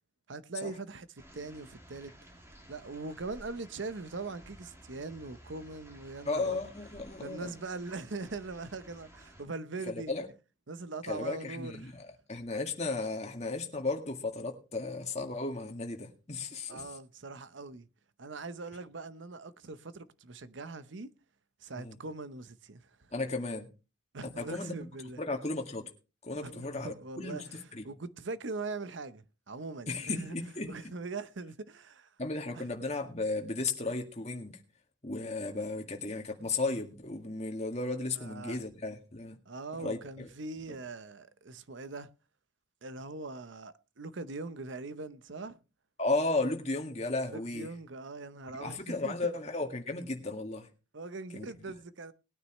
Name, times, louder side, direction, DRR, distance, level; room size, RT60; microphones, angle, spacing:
voice 1, 0.3-2.1 2.7-6.6 7.2-10.1 10.7-11.9 16.7-17.9 18.2-21.1 21.6-23.1 24.1-25.2 26.4-30.4 30.7-32.1 32.5-32.7 38.2-38.6 39.5-42.1 42.8-45.6 47.3-49.2 50.9-52.1, right 3 dB, 70° right, 0.8 m, -41 dB
sound 1, 1.2-9.4, equal, 15° right, 2.4 m, -54 dB
voice 2, 6.3-7.5 9.9-10.3 11.1-16.8 21.8-22.0 23.1-23.7 24.4-24.7 25.2-25.9 26.2-27.8 29.9-30.9 32.2-34.6 35.0-39.4 39.7-40.3 46.0-47.7 48.6-50.7 51.3-51.5, left 3 dB, 35° left, 1.9 m, -35 dB
20.0 x 9.5 x 3.1 m
head